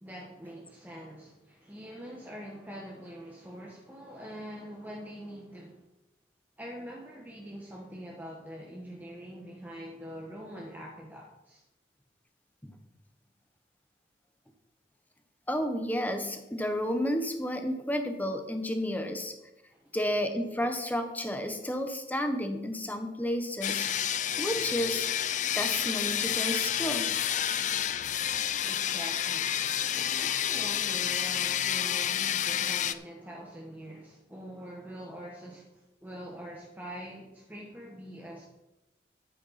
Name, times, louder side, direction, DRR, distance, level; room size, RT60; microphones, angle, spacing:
voice 1, 0.0-5.8 6.6-11.6 19.7-19.9 28.6-29.6 29.9-38.5, equal, 10° right, -3 dB, 1.3 m, -44 dB
voice 2, 15.5-19.3 19.9-23.9 24.4-25.1 25.5-27.1, equal, 10° left, 6 dB, 1.1 m, -31 dB
sound 1, 23.6-32.9, left 10 dB, 45° left, 0.4 m, -29 dB
10.5 x 9.6 x 4.2 m, 0.96 s
head